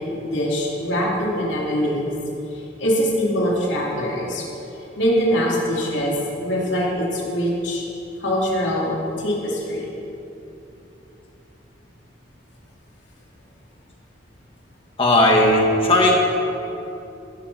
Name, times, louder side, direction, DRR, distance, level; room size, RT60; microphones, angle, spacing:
voice 1, 0.0-2.1 2.5-4.4 5.0-7.8 8.2-9.9, equal, 85° left, -4 dB, 2.6 m, -23 dB
voice 2, 15.0-16.2, left 1 dB, 30° left, -1 dB, 1.7 m, -16 dB
15.5 x 6.7 x 5.3 m, 2.9 s
head